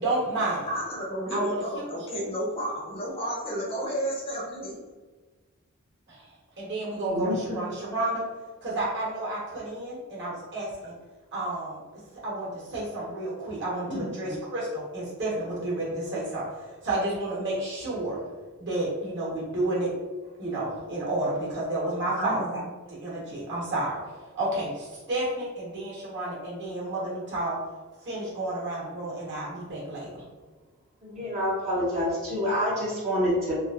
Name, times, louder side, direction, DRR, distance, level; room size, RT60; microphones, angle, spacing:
voice 1, 0.0-0.7 1.3-1.8 2.1-2.2 6.1-8.3 8.6-10.9 11.3-18.3 18.6-19.9 20.4-22.6 22.9-27.6 28.0-30.2, right 2 dB, 55° right, -5 dB, 1.1 m, -31 dB
voice 2, 0.7-4.8 13.9-14.4 22.2-22.6, equal, 25° left, -3 dB, 0.6 m, -32 dB
voice 3, 31.0-33.5, equal, 35° right, -9 dB, 0.6 m, -27 dB
3.0 x 2.5 x 2.4 m, 1.3 s
head